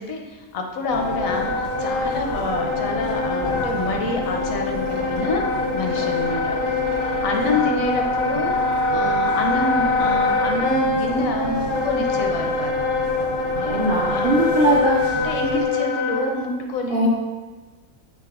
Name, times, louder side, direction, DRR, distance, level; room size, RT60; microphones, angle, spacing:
voice 1, 0.0-6.8 7.2-8.5 8.9-12.8 13.6-13.8 14.1-14.4 15.2-17.1, left 3 dB, 80° left, 2 dB, 1.1 m, -27 dB
Wind instrument woodwind instrument, 0.9-16.4, left 3 dB, 65° left, 0.5 m, -24 dB
sound 1, 0.9-15.6, right 2 dB, 45° right, 0.8 m, -34 dB
voice 2, 13.5-15.1 16.9-17.1, right 2 dB, 65° right, -4 dB, 0.5 m, -20 dB
5.9 x 3.5 x 2.4 m, 1.3 s
omnidirectional pair, 1.5 m